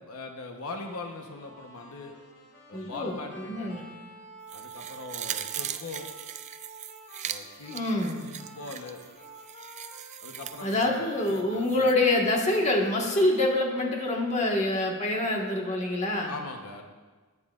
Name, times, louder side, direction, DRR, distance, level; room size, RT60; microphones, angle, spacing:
voice 1, 0.0-2.1 2.7-3.8 4.5-6.1 7.2-9.0 10.2-11.9 16.3-16.9, left 3 dB, 90° left, 3 dB, 1.0 m, -41 dB
sound 1, 0.6-11.6, right 2 dB, 55° left, 2.5 m, -49 dB
voice 2, 2.7-3.8 7.7-8.2 10.6-16.3, left 2 dB, 30° left, -1 dB, 1.5 m, -26 dB
sound 2, 4.5-11.9 12.3-12.4, right 10 dB, 35° right, 0.4 m, -40 dB
18.0 x 9.6 x 2.5 m, 1.4 s
head